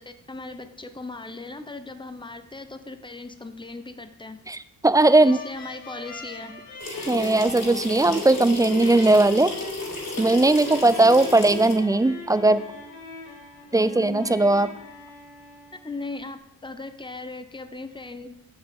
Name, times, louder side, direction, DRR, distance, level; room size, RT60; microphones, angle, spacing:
voice 1, 0.0-4.4 5.2-6.5 13.8-13.9 15.8-18.3, left 3 dB, 10° left, 9 dB, 0.8 m, -38 dB
voice 2, 4.5-5.4 7.1-9.5 10.2-12.6 13.7-14.7, right 2 dB, 10° right, 15 dB, 0.3 m, -18 dB
sound 1, 5.0-16.4, left 3 dB, 90° left, 2.1 m, -42 dB
sound 2, 6.8-11.8, left 2 dB, 45° left, 3.5 m, -33 dB
7.2 x 6.3 x 5.4 m, 0.80 s
cardioid pair, 80°, 39 cm